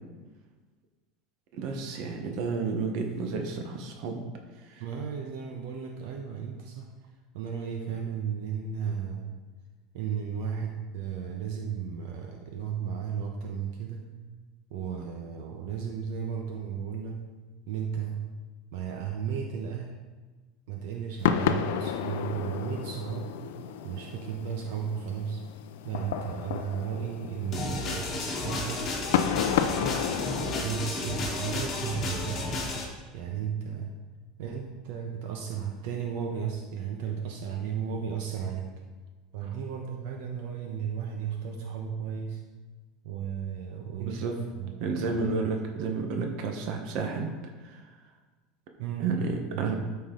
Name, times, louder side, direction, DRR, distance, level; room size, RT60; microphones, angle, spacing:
voice 1, 1.5-4.2 4.6-4.8 39.4-39.5 44.0-44.4 44.8-47.3 47.6-47.8 49.0-49.7, right 4 dB, 45° right, 3 dB, 1.2 m, -31 dB
voice 2, 4.8-6.9 7.3-9.3 9.9-14.0 14.7-17.2 17.7-18.3 18.7-19.9 20.7-23.3 23.8-25.4 25.8-28.8 30.5-32.5 33.1-33.9 34.4-38.7 39.3-42.4 43.0-44.7 45.0-45.5 48.8-49.2 49.5-49.7, right 7 dB, 60° right, 1 dB, 1.0 m, -34 dB
sound 1, 21.2-30.6, left 9 dB, 80° left, 0.5 m, -31 dB
sound 2, 27.5-32.8, left 2 dB, 25° left, 1.5 m, -32 dB
12.5 x 5.5 x 3.9 m, 1.3 s
supercardioid pair, 175°, 0 cm